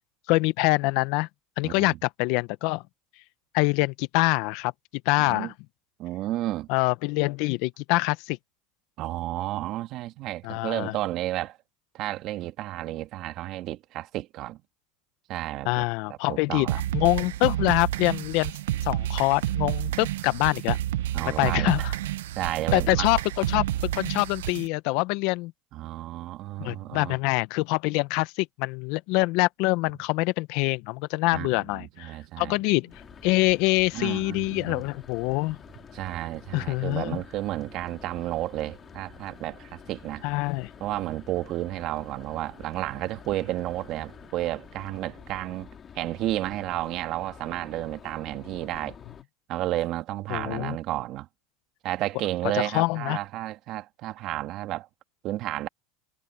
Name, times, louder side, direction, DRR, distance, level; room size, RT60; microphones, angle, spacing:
voice 1, 0.3-1.3 1.6-2.8 3.5-4.7 5.0-5.5 6.7-8.4 10.4-11.0 15.7-16.7 16.9-18.5 18.8-20.8 21.2-21.9 22.7-25.5 26.6-32.1 32.4-32.9 33.2-35.6 36.5-37.2 40.2-40.7 50.3-50.8 52.5-53.2, left 23 dB, 65° left, 0.9 m, -25 dB
voice 2, 1.6-2.0 5.2-5.5 6.0-6.7 9.0-11.6 11.9-14.6 15.3-15.8 16.1-16.8 21.1-21.9 22.3-23.1 25.7-27.1 31.3-32.6 33.9-34.8 35.9-40.2 40.8-45.7 45.9-49.0 49.5-51.3 51.8-54.9 55.2-55.7, right 15 dB, 50° right, 1.7 m, -32 dB
sound 1, 16.7-24.7, right 13 dB, 90° right, 0.7 m, -29 dB
sound 2, 31.9-45.7, right 25 dB, 75° right, 6.1 m, -59 dB
sound 3, 32.9-49.2, left 7 dB, 30° left, 3.2 m, -48 dB
supercardioid pair, 120°, 0 cm